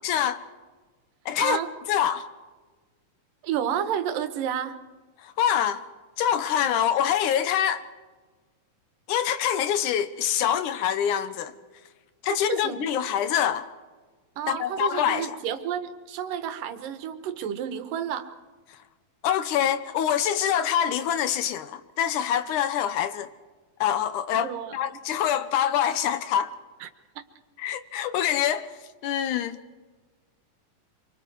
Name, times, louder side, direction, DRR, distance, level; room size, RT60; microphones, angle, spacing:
voice 1, 0.0-0.4 1.3-1.6 1.9-2.3 5.2-5.8 6.2-7.8 9.1-11.5 12.2-13.7 14.5-15.4 19.2-23.3 23.8-26.5 27.6-28.7 29.0-29.6, left 9 dB, 75° left, 2.3 m, -25 dB
voice 2, 3.4-4.8 12.5-13.0 14.4-18.3 24.4-24.8 26.8-26.9, right 9 dB, 80° right, 2.8 m, -30 dB
26.0 x 24.5 x 4.7 m
omnidirectional pair, 3.9 m